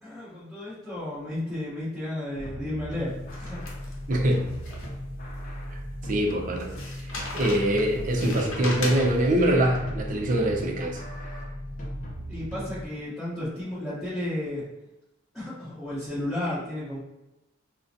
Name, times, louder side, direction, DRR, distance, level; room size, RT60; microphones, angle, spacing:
voice 1, 0.0-3.6 12.3-14.6 15.3-17.0, left 1 dB, ahead, -15 dB, 0.9 m, -33 dB
sound 1, 2.4-12.9, equal, 40° left, 0.5 m, -37 dB
sound 2, 3.2-5.3 5.7-5.8 6.6-9.4, left 2 dB, 85° left, 0.7 m, -37 dB
voice 2, 4.1-4.5 5.7-5.8 6.0-6.7 7.3-11.0, right 1 dB, 40° right, 1 dB, 0.5 m, -24 dB
3.7 x 2.1 x 2.6 m, 0.92 s
head